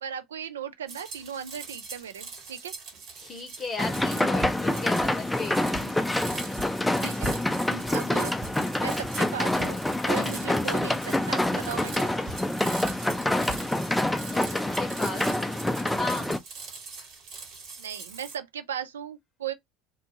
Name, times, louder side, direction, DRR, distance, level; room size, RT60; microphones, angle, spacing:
voice 1, 0.0-2.7 7.0-7.4 7.7-8.3 8.8-9.8 10.1-12.3 17.8-19.5, right 8 dB, 90° right, 0.4 m, -37 dB
sound 1, 0.9-18.4, right 5 dB, 65° right, 1.3 m, -43 dB
voice 2, 3.2-6.2 13.7-13.8 14.2-15.6 15.9-16.4, left 3 dB, 35° left, 0.7 m, -37 dB
sound 2, 3.8-16.4, left 1 dB, 5° left, 0.4 m, -27 dB
sound 3, 5.7-13.7, right 1 dB, 25° right, 0.7 m, -43 dB
2.6 x 2.3 x 2.7 m
hypercardioid pair, 75°, 0 cm